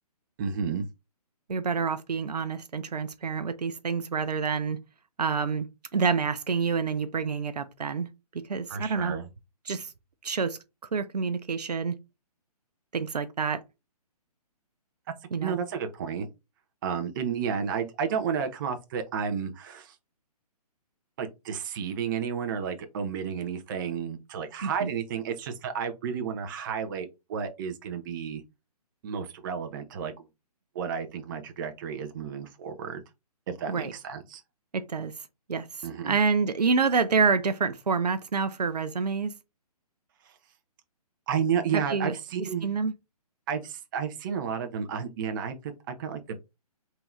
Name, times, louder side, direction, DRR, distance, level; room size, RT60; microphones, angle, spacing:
voice 1, 0.4-0.8 8.7-9.3 15.4-16.3 16.8-20.0 21.2-28.4 29.0-30.3 30.7-33.0 33.5-34.4 35.8-36.2 41.3-42.7 43.5-46.4, right 7 dB, 30° right, 0.6 m, -32 dB
voice 2, 1.5-4.8 5.2-5.7 5.9-8.1 8.3-9.2 9.7-9.9 10.2-10.6 10.9-12.0 12.9-13.6 15.3-15.6 24.6-24.9 33.7-33.9 34.7-35.1 35.5-35.7 36.0-39.3 41.7-42.1 42.6-42.9, right 5 dB, 80° right, 0.5 m, -27 dB
3.6 x 2.9 x 3.1 m
figure-of-eight pair, 135°, 20 cm